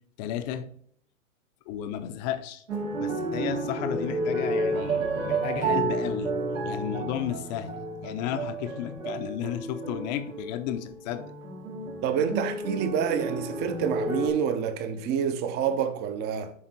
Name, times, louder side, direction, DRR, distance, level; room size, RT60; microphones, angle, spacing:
voice 1, 0.2-0.7 1.7-2.6 2.9-6.3 6.6-11.3, left 10 dB, 35° left, 0.6 m, -33 dB
sound 1, 2.7-14.3, right 2 dB, 80° right, 2.6 m, -31 dB
voice 2, 12.0-16.5, right 7 dB, 25° right, 0.7 m, -28 dB
10.5 x 3.7 x 4.1 m
hypercardioid pair, 120°, 40 cm